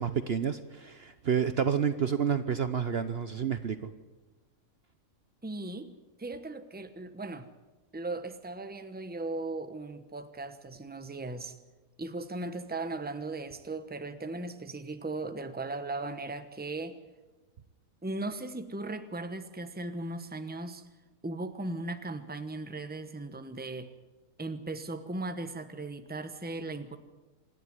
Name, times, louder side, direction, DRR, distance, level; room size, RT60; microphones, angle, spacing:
voice 1, 0.0-3.9, right 7 dB, 50° right, 11 dB, 1.0 m, -29 dB
voice 2, 5.4-5.9 6.2-7.5 7.9-11.5 12.0-17.0 18.0-20.9 21.2-23.9 24.4-27.0, right 2 dB, 10° right, 10 dB, 1.0 m, -37 dB
26.5 x 10.5 x 9.5 m, 1.2 s
omnidirectional pair, 1.5 m